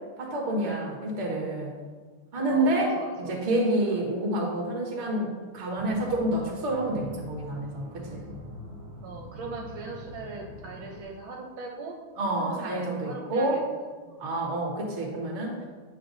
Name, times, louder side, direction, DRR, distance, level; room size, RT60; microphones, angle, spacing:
voice 1, 0.2-1.7 2.3-8.2 12.2-13.6 14.2-15.5, right 1 dB, 40° right, -1 dB, 1.4 m, -28 dB
voice 2, 2.5-3.4 3.9-4.0 8.9-12.0 12.4-13.6 14.0-14.7, right 4 dB, 70° right, 0 dB, 1.5 m, -40 dB
sound 1, 5.7-11.0, left 1 dB, 55° right, 1.0 m, -43 dB
8.6 x 6.1 x 2.6 m, 1.4 s
omnidirectional pair, 2.3 m